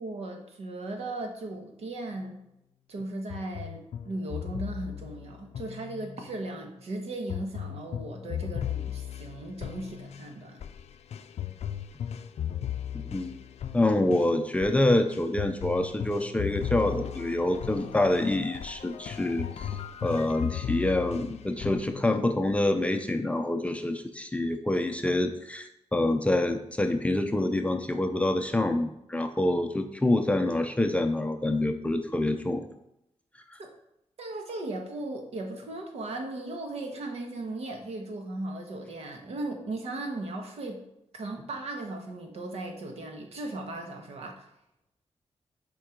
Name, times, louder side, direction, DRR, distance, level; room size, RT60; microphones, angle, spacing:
voice 1, 0.0-2.4 2.9-10.6 33.6-33.7 34.2-40.8 41.1-44.5, right 2 dB, 70° right, 3 dB, 1.4 m, -37 dB
sound 1, 3.3-6.4 7.3-22.0, left 10 dB, 70° left, 0.4 m, -37 dB
voice 2, 12.9-13.3 13.7-19.7 20.0-32.7, left 1 dB, 10° left, 6 dB, 0.5 m, -26 dB
7.5 x 4.5 x 5.1 m, 0.83 s
wide cardioid pair, 165°, 11 cm